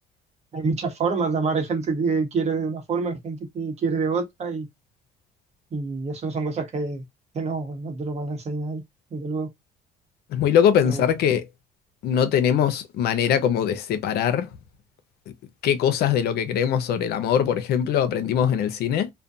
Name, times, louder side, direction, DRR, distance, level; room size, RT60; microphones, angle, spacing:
voice 1, 0.5-4.7 5.7-7.0 7.3-8.8 9.1-9.5 10.8-11.0, right 4 dB, 40° right, 0.9 m, -27 dB
voice 2, 10.3-11.5 12.0-14.5 15.6-19.1, left 9 dB, 70° left, 0.6 m, -22 dB
2.4 x 2.1 x 2.6 m
cardioid pair, 110°, 17 cm